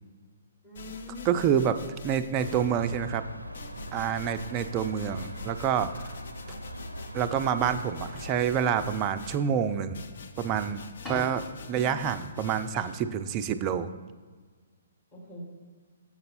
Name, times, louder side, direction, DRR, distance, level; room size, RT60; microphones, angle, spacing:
voice 1, 0.6-1.5 11.7-12.1 15.1-15.5, left 2 dB, 30° left, -5 dB, 1.8 m, -43 dB
sound 1, 0.7-3.0 3.5-13.0, left 5 dB, 55° left, 0.5 m, -46 dB
voice 2, 1.3-1.8 2.0-3.2 3.9-5.9 7.1-10.0 10.4-10.8 11.1-13.9, right 8 dB, 25° right, 10 dB, 0.3 m, -27 dB
sound 2, 2.4-8.3, equal, 85° right, 0.5 m, -40 dB
sound 3, 5.1-5.4 5.8-5.9 7.2-7.3 7.9-10.1 10.4-10.5 10.8-13.3, left 1 dB, 5° left, 1.1 m, -47 dB
7.4 x 5.2 x 4.2 m, 1.5 s
figure-of-eight pair, 125°, 0 cm